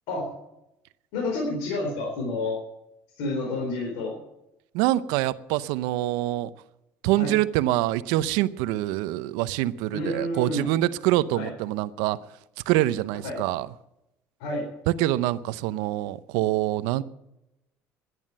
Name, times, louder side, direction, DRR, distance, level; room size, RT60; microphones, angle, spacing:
voice 1, 1.1-2.6 3.1-4.2 7.2-7.3 9.9-10.6 11.3-11.5 13.2-13.4 14.4-14.7, left 2 dB, 80° left, 4.5 m, -29 dB
voice 2, 4.7-6.5 7.0-12.2 12.7-13.7 14.9-17.0, right 15 dB, 80° right, 0.6 m, -25 dB
11.0 x 11.0 x 9.0 m
supercardioid pair, 95°, 7 cm